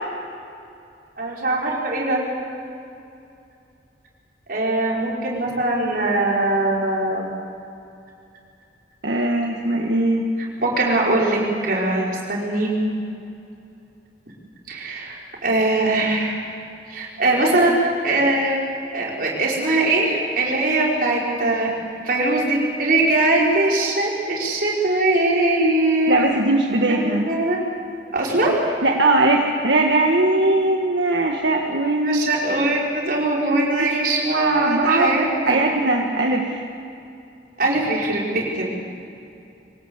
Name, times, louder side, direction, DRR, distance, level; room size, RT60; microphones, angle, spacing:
voice 1, 1.2-2.2 4.5-7.3 10.6-11.4 11.6-12.7 14.7-16.4 16.9-18.6 18.9-21.7 22.0-26.2 26.9-27.6 28.1-28.5 32.0-35.6 37.6-38.7, right 2 dB, 55° right, -3 dB, 5.6 m, -21 dB
voice 2, 9.0-10.2 26.1-27.2 28.8-32.3 33.5-33.9 34.3-35.1 35.5-36.6, right 2 dB, 85° right, 0 dB, 1.7 m, -20 dB
24.5 x 18.5 x 8.2 m, 2.6 s
head